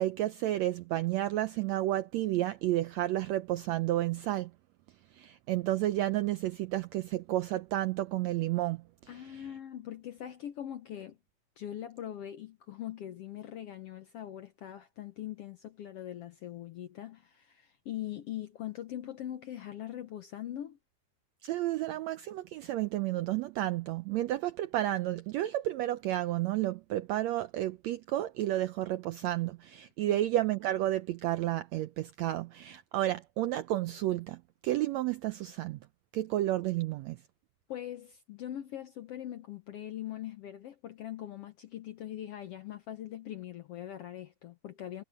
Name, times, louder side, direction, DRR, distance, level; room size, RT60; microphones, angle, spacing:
voice 1, 0.0-4.5 5.1-8.8 9.2-9.4 21.4-35.8 36.1-37.2, right 14 dB, 85° right, 1.6 m, -31 dB
voice 2, 9.1-11.2 11.6-20.8 30.1-30.2 37.7-45.0, left 11 dB, 70° left, 1.5 m, -42 dB
omnidirectional pair, 3.8 m